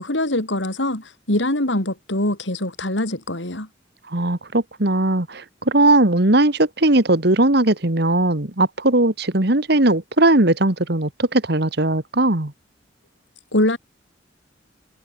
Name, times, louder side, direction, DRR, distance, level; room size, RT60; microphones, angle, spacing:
voice 1, 0.0-3.7 13.5-13.8, left 1 dB, 75° left, 4.7 m, -23 dB
voice 2, 4.1-12.5, right 2 dB, 60° right, 2.1 m, -18 dB
head